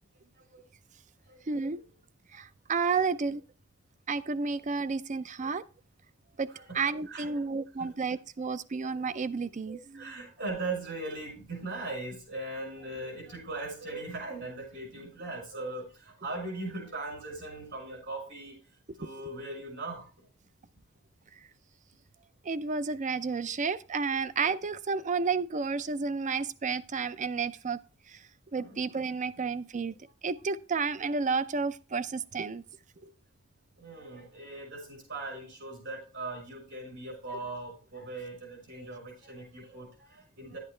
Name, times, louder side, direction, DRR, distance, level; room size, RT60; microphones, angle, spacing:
voice 1, 1.5-1.8 2.3-3.4 4.1-5.6 6.4-6.5 6.7-10.3 22.4-27.8 28.1-30.0 30.2-32.6 33.0-33.1, right 4 dB, 35° right, 0.5 m, -31 dB
voice 2, 6.5-7.5 7.8-7.9 8.4-8.5 8.9-9.0 9.7-18.6 19.0-20.3 28.5-28.8 33.0-33.1 33.8-40.6, right 2 dB, 60° right, 5.6 m, -39 dB
11.0 x 8.3 x 3.2 m
head